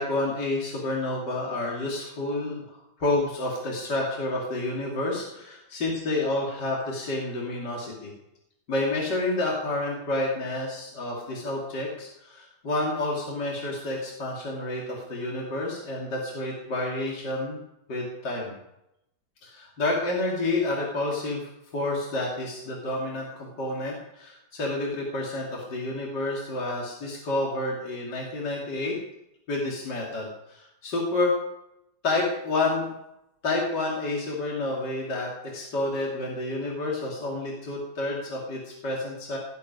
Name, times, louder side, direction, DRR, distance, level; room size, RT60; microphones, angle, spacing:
voice 1, 0.0-8.1 8.7-17.6 17.9-18.5 19.4-29.0 29.5-31.4 32.0-32.9 33.4-39.4, left 2 dB, 60° left, -3 dB, 3.4 m, -29 dB
18.0 x 8.4 x 9.5 m, 0.87 s
omnidirectional pair, 2.1 m